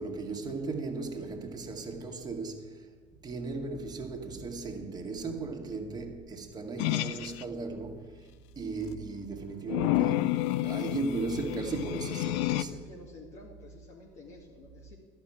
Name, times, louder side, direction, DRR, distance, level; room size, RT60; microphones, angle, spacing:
voice 1, 0.0-2.9 3.2-8.3 8.6-12.8, right 3 dB, 25° right, 2.0 m, -36 dB
sound 1, 6.8-7.4 9.7-12.6, left 16 dB, 75° left, 0.4 m, -30 dB
voice 2, 12.7-14.9, left 2 dB, 50° left, 2.1 m, -50 dB
11.5 x 6.0 x 8.7 m
hypercardioid pair, 80°, 15 cm